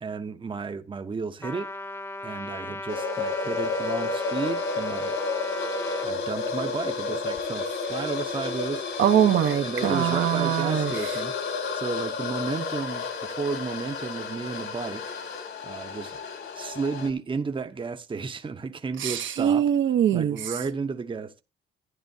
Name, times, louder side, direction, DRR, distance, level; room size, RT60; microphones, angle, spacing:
voice 1, 0.0-1.7 2.2-5.2 6.0-8.9 9.6-11.3 11.7-15.0 15.6-16.2 16.5-19.7 20.1-21.4, right 4 dB, 25° right, 0.8 m, -33 dB
Trumpet, 1.4-6.1, left 1 dB, 10° left, 0.9 m, -36 dB
sound 1, 2.9-17.1, left 4 dB, 65° left, 2.3 m, -31 dB
voice 2, 9.0-11.1 19.0-20.5, right 10 dB, 65° right, 0.9 m, -23 dB
13.0 x 10.0 x 2.7 m
cardioid pair, 90°, 21 cm